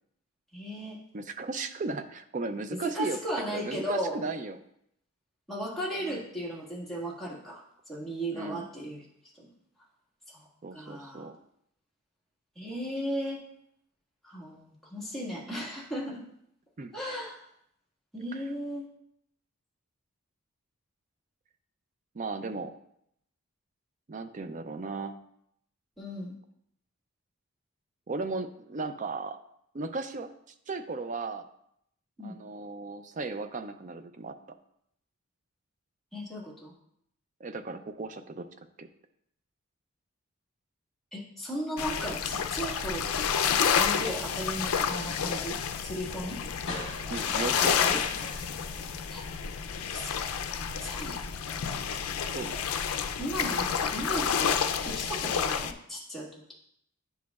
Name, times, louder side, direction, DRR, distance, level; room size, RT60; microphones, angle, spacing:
voice 1, 0.5-1.0 2.7-4.3 5.5-9.0 9.4-9.5 10.3-11.3 12.5-13.4 14.2-16.2 16.9-17.4 18.1-18.8 26.0-26.3 32.2-32.4 36.1-36.7 41.1-43.1 43.5-46.4 47.6-48.0 49.1-49.2 49.9-50.2 50.8-51.4 53.1-54.6 54.8-56.5, equal, ahead, -7 dB, 1.6 m, -36 dB
voice 2, 1.1-3.2 3.5-4.6 6.0-6.2 8.3-8.6 10.6-11.4 16.8-16.9 18.3-18.4 22.1-22.7 24.1-25.2 28.1-29.4 29.7-30.3 30.7-31.5 32.2-34.4 37.4-38.5 38.8-38.9 47.1-47.8 52.3-52.6, right 3 dB, 35° right, 10 dB, 0.4 m, -36 dB
sound 1, 41.8-55.7, left 7 dB, 75° left, 0.4 m, -30 dB
sound 2, 46.7-49.9, left 2 dB, 60° left, 1.0 m, -41 dB
10.0 x 5.0 x 2.3 m, 0.73 s
head